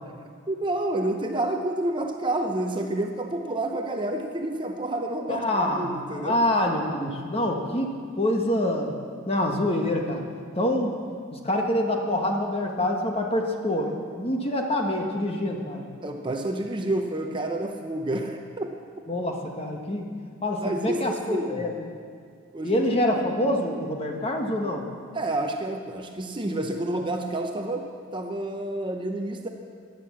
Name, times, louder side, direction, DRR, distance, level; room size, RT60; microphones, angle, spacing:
voice 1, 0.2-6.5 16.0-18.7 20.6-21.7 22.5-22.8 25.1-29.5, right 1 dB, 25° right, 4 dB, 0.7 m, -29 dB
voice 2, 5.3-5.9 6.2-8.9 9.3-10.2 10.6-10.9 11.3-15.9 19.1-20.1 20.4-21.8 22.6-24.8, left 1 dB, 30° left, 2 dB, 1.4 m, -26 dB
15.5 x 10.5 x 7.3 m, 2.2 s
head